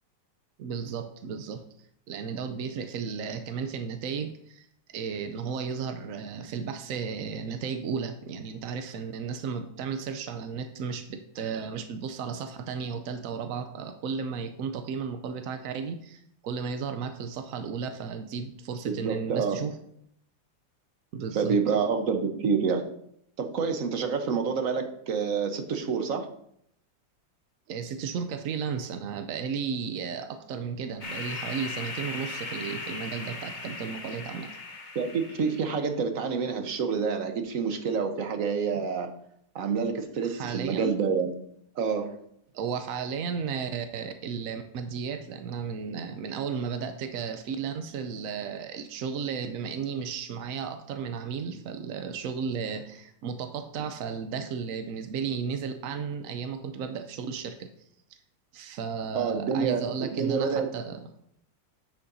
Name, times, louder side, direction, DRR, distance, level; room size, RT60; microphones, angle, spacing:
voice 1, 0.6-1.6 2.1-4.7 4.9-19.8 21.1-21.6 27.7-34.5 40.2-41.0 42.5-57.7 58.5-61.1, right 6 dB, 70° right, 7 dB, 0.7 m, -34 dB
voice 2, 18.8-19.6 21.3-22.9 23.4-26.3 34.9-39.1 39.5-41.3 41.8-42.2 59.1-59.8 60.1-60.7, right 5 dB, 50° right, 6 dB, 1.2 m, -28 dB
sound 1, 31.0-35.8, left 3 dB, 30° left, 1.0 m, -38 dB
10.0 x 8.4 x 2.7 m, 0.70 s
omnidirectional pair, 2.1 m